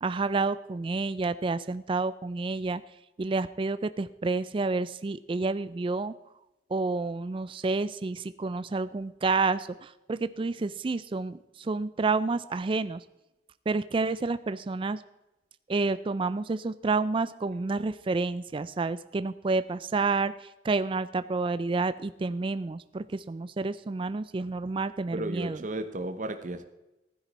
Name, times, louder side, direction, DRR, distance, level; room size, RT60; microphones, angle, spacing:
voice 1, 0.0-2.8 3.2-6.1 6.7-13.0 13.7-15.0 15.7-25.6, right 3 dB, 30° right, 14 dB, 0.4 m, -29 dB
voice 2, 25.1-26.6, right 1 dB, 45° right, 8 dB, 0.8 m, -34 dB
15.5 x 10.0 x 4.2 m, 0.99 s
head